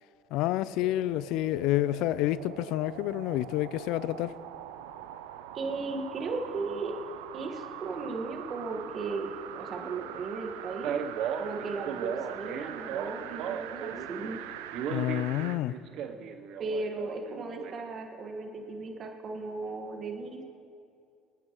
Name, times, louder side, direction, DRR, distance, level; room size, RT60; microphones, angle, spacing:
voice 1, 0.3-4.3 14.9-15.7, left 15 dB, 70° left, 0.4 m, -29 dB
sound 1, 0.6-15.6 16.1-16.2, right 11 dB, 85° right, 0.4 m, -43 dB
voice 2, 5.5-7.0 7.3-10.9 11.4-14.4 16.6-20.4, right 3 dB, 50° right, 1.6 m, -36 dB
Male speech man speaking, 10.8-14.1 14.3-17.7, right 8 dB, 65° right, 0.8 m, -35 dB
24.5 x 9.2 x 3.0 m
hypercardioid pair, 70°, 0 cm